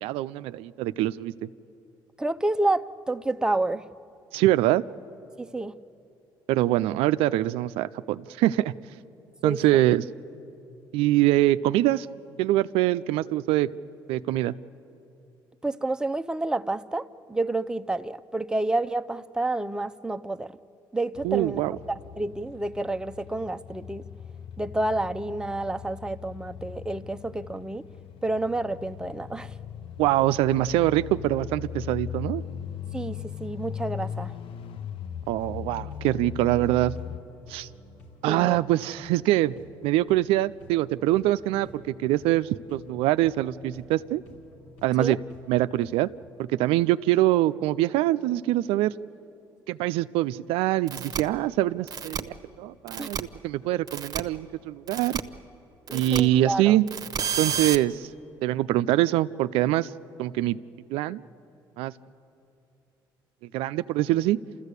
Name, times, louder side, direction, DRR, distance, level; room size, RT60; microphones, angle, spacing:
voice 1, 0.0-1.5 4.3-4.8 6.5-8.7 9.4-10.0 10.9-12.1 12.4-13.7 14.1-14.5 21.2-21.8 30.0-32.4 35.3-36.9 37.5-37.7 38.2-39.5 39.8-41.7 42.0-44.2 44.8-45.2 45.5-46.1 46.4-48.9 49.7-55.2 55.9-56.9 57.4-58.1 58.4-59.9 60.2-60.6 60.9-61.2 61.8-61.9 63.5-64.4, right 15 dB, 85° right, 14 dB, 0.4 m, -24 dB
voice 2, 2.2-3.9 5.4-5.7 9.4-9.8 15.6-20.5 20.9-21.6 21.9-24.0 24.6-27.8 28.2-29.5 32.9-34.3 38.3-38.6 45.0-45.2 53.0-53.1 55.9-56.8, right 2 dB, 10° right, 9 dB, 0.6 m, -29 dB
sound 1, 21.1-37.2, left 8 dB, 70° left, 0.8 m, -39 dB
sound 2, 35.4-45.9, left 1 dB, 90° left, 3.8 m, -52 dB
sound 3, 50.9-51.2 51.9-52.2 52.9-53.2 53.9-54.2 54.9-55.2 55.9-56.2 56.9-57.8, right 7 dB, 45° right, 1.0 m, -30 dB
29.0 x 14.5 x 8.2 m, 2.8 s
supercardioid pair, 75°, 9 cm